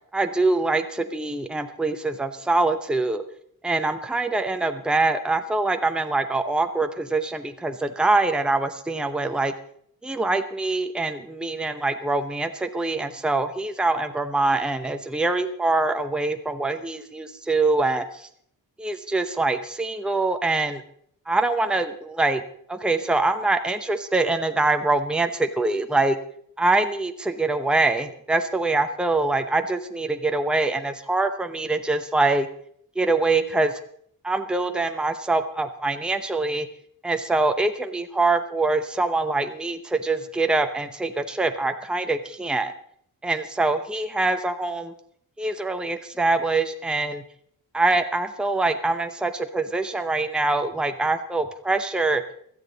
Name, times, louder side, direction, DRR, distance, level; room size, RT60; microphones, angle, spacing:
voice 1, 0.1-3.2 3.6-9.5 10.0-18.3 18.8-20.8 21.3-22.4 22.7-26.2 26.6-32.5 33.0-33.8 34.2-36.7 37.0-42.7 43.2-44.9 45.4-47.2 47.7-52.2, right 2 dB, ahead, 6 dB, 0.8 m, -24 dB
17.0 x 13.0 x 4.0 m, 0.64 s
wide cardioid pair, 140°, 37 cm